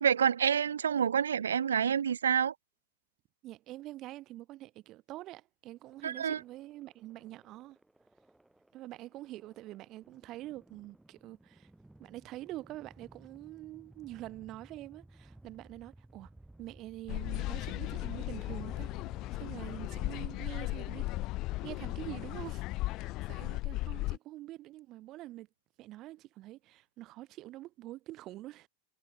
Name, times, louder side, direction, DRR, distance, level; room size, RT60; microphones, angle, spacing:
voice 1, 0.0-2.5 6.0-6.4, right 8 dB, 65° right, 0.4 m, -28 dB
voice 2, 3.4-7.8 8.7-11.7 12.0-16.3 16.6-19.0 19.3-21.0 21.6-25.5 25.8-28.7, right 16 dB, 35° right, 1.9 m, -46 dB
sound 1, 5.8-20.9, right 1 dB, 5° right, 1.6 m, -57 dB
sound 2, 17.1-24.2, left 19 dB, 40° left, 0.6 m, -36 dB
figure-of-eight pair, 90°, 0 cm